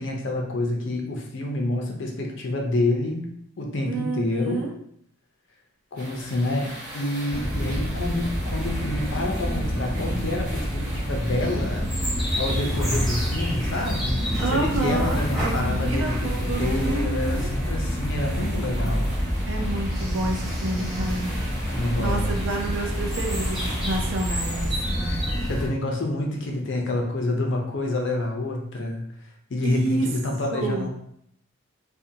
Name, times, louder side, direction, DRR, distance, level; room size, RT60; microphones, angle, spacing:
voice 1, 0.0-4.6 5.9-11.9 12.4-14.2 14.5-19.1 21.8-22.3 25.1-29.0 29.5-30.9, left 2 dB, 55° left, 1 dB, 0.5 m, -28 dB
voice 2, 3.9-4.7 14.4-17.5 19.5-21.3 22.0-25.1 29.6-30.1 30.5-30.9, right 2 dB, 60° right, 1 dB, 0.5 m, -29 dB
sound 1, 5.9-24.8, right 1 dB, 35° right, 1.1 m, -41 dB
sound 2, 7.3-25.7, equal, ahead, 0.6 m, -27 dB
2.5 x 2.2 x 2.7 m, 0.70 s
head